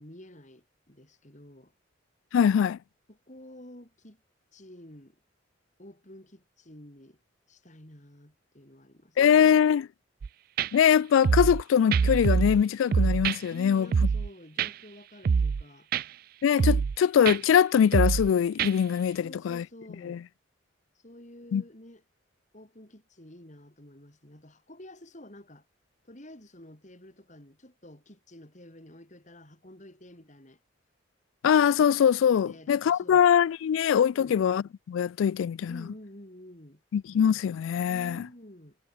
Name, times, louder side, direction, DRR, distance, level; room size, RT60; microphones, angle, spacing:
voice 1, 0.0-1.7 3.1-4.2 4.5-5.2 5.8-7.2 7.5-9.6 13.5-15.9 19.2-20.3 21.0-22.0 22.5-25.6 26.0-30.6 32.4-33.3 34.1-34.4 35.7-36.8 37.9-38.8, left 1 dB, 40° left, 4.1 m, -50 dB
voice 2, 2.3-2.8 9.2-9.9 10.7-13.9 16.4-19.6 20.0-20.2 21.5-21.6 31.4-35.8 36.9-38.2, left 8 dB, 80° left, 0.3 m, -23 dB
sound 1, 10.2-10.3 10.6-10.7 11.2-11.6 11.9-12.6 12.9-13.4 13.9-14.3 14.6-14.7 15.2-15.6 15.9-16.0 16.6-17.0 17.3-17.4 17.9-18.3 18.6-18.7, right 5 dB, 50° right, 0.3 m, -24 dB
head